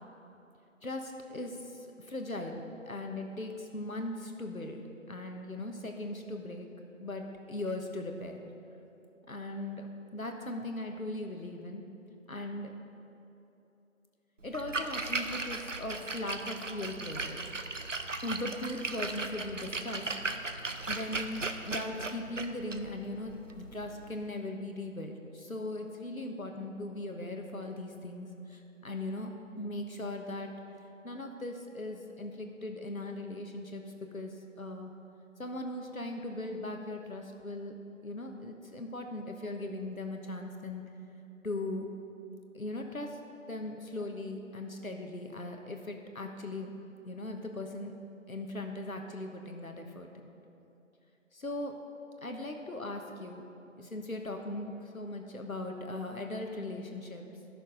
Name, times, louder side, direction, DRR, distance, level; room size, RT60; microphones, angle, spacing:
voice 1, 0.8-6.7 7.0-8.5 9.3-9.9 10.1-11.8 12.3-12.7 14.4-17.4 18.2-20.2 20.9-30.5 31.0-33.8 34.1-34.9 35.4-37.8 38.0-40.8 41.4-41.9 42.5-43.2 43.5-46.7 47.1-48.0 48.3-50.1 51.3-51.7 52.2-53.4 53.8-57.2, left 2 dB, 85° left, 3 dB, 1.3 m, -39 dB
Splash splatter, 14.4-24.3, right 3 dB, 65° right, 0.7 m, -37 dB
12.0 x 6.5 x 5.2 m, 2.8 s
figure-of-eight pair, 180°, 41 cm